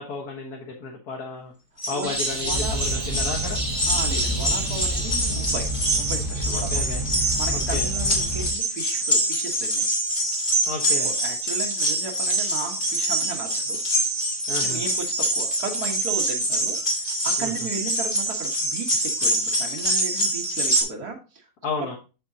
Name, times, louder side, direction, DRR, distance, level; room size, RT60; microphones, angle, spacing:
voice 1, 0.0-1.5 1.9-3.6 6.5-7.0 7.5-7.9 10.7-11.1 14.5-14.8 17.4-17.7 21.6-22.0, left 4 dB, 80° left, -1 dB, 1.9 m, -33 dB
sound 1, 1.8-20.8, right 1 dB, 35° left, 2.1 m, -25 dB
voice 2, 1.9-2.8 3.9-5.7 5.9-6.8 7.4-9.8 11.0-13.9 14.6-21.4, right 4 dB, 80° right, 0 dB, 2.0 m, -35 dB
sound 2, 2.0-5.7, right 1 dB, 55° right, 3.7 m, -34 dB
sound 3, 2.4-8.5, equal, 20° right, 1.9 m, -29 dB
7.5 x 7.5 x 2.8 m, 0.32 s
omnidirectional pair, 1.6 m